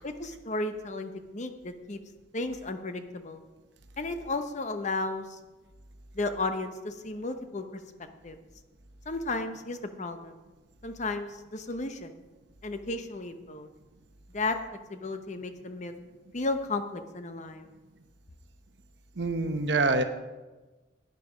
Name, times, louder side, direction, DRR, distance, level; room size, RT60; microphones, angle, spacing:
voice 1, 0.0-2.0 2.3-3.4 4.0-5.4 6.1-7.6 8.2-8.4 9.1-10.4 10.8-12.1 12.6-13.7 14.3-14.6 14.9-15.9 16.3-17.7, left 2 dB, 40° left, 8 dB, 0.8 m, -33 dB
voice 2, 19.2-20.0, right 3 dB, 70° right, 8 dB, 0.9 m, -25 dB
11.0 x 9.3 x 5.0 m, 1.2 s
head